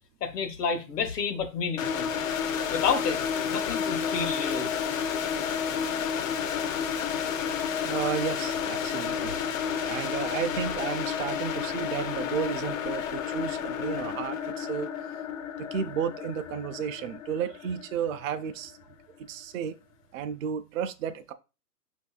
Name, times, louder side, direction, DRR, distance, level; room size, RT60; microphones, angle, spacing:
voice 1, 0.2-2.1 2.7-4.7, left 5 dB, 75° left, 1.0 m, -30 dB
sound 1, 1.8-18.6, left 7 dB, 55° left, 0.6 m, -31 dB
voice 2, 7.8-9.3 9.9-14.9 15.6-18.8 19.2-19.7 20.1-21.3, right 8 dB, 55° right, 0.5 m, -33 dB
5.2 x 2.6 x 2.3 m
hypercardioid pair, 135°, 48 cm